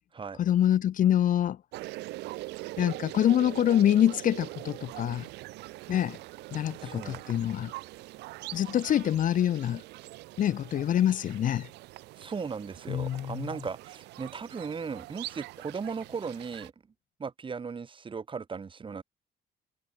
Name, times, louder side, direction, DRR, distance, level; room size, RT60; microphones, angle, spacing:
voice 1, 0.4-1.6 2.8-5.3 5.9-6.2 6.5-7.7 8.5-9.8 10.4-11.7 12.9-13.5, left 11 dB, 50° left, 1.0 m, -25 dB
sound 1, 1.7-16.7, right 19 dB, 90° right, 5.5 m, -43 dB
voice 2, 6.8-7.2 12.2-16.7 17.2-19.0, right 5 dB, 30° right, 3.6 m, -37 dB
cardioid pair, 110°, 17 cm